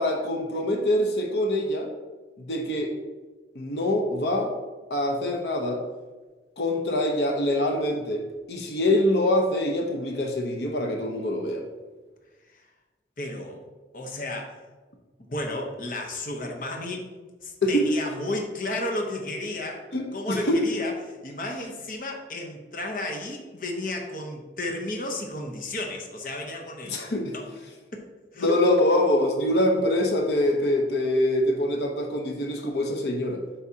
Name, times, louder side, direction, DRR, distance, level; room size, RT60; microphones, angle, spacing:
voice 1, 0.0-1.9 2.4-2.9 3.5-4.5 4.9-5.8 6.6-11.6 17.6-17.9 19.9-20.6 26.9-27.3 28.4-33.4, left 1 dB, 75° left, 1 dB, 0.9 m, -24 dB
voice 2, 13.2-13.6 13.9-14.6 15.2-17.0 17.4-27.0 27.3-27.5 27.9-28.0 28.3-28.6, left 2 dB, 50° left, 1 dB, 0.9 m, -33 dB
8.4 x 5.6 x 2.8 m, 1.3 s
head